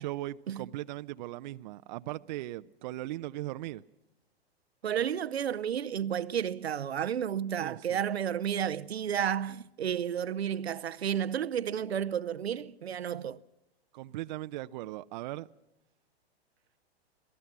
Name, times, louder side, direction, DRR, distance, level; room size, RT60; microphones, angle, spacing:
voice 1, 0.0-3.8 7.6-8.0 13.9-15.5, right 16 dB, 45° right, 0.7 m, -38 dB
voice 2, 4.8-13.4, right 9 dB, 80° right, 0.8 m, -32 dB
27.0 x 18.5 x 6.0 m
hypercardioid pair, 115°, 32 cm